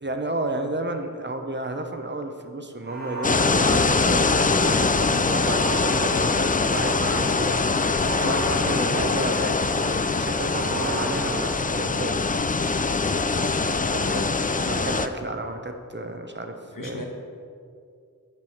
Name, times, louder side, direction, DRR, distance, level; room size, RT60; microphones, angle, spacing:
voice 1, 0.0-12.5 13.9-17.0, right 2 dB, 35° right, 5 dB, 0.8 m, -32 dB
sound 1, 2.8-4.7 5.3-7.2 7.9-9.7 10.4-12.3, right 1 dB, 75° right, 1.9 m, -35 dB
sound 2, 3.2-15.1, left 4 dB, 25° left, 0.4 m, -23 dB
voice 2, 14.0-14.3 16.7-17.1, left 2 dB, 75° left, 1 dB, 1.3 m, -35 dB
7.6 x 4.7 x 7.1 m, 2.3 s
wide cardioid pair, 50°, 33 cm